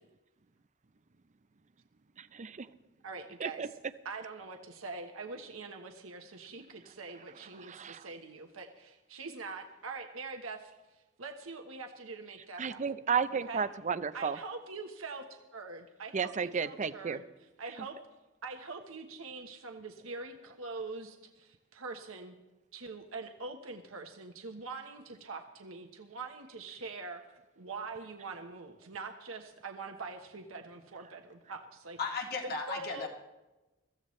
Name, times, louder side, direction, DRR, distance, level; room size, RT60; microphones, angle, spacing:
voice 1, 2.3-2.7 3.4-3.7 7.7-8.0 12.6-14.4 16.1-17.2, right 6 dB, 35° right, 13 dB, 0.5 m, -32 dB
voice 2, 3.0-3.8 4.0-10.7 11.2-12.8 13.3-13.6 14.1-18.0 18.4-22.3 22.7-32.0 32.4-33.1, right 3 dB, 80° right, 4 dB, 1.2 m, -44 dB
voice 3, 32.0-33.1, left 4 dB, 50° left, 1 dB, 2.3 m, -35 dB
22.5 x 15.0 x 3.2 m, 1.1 s
head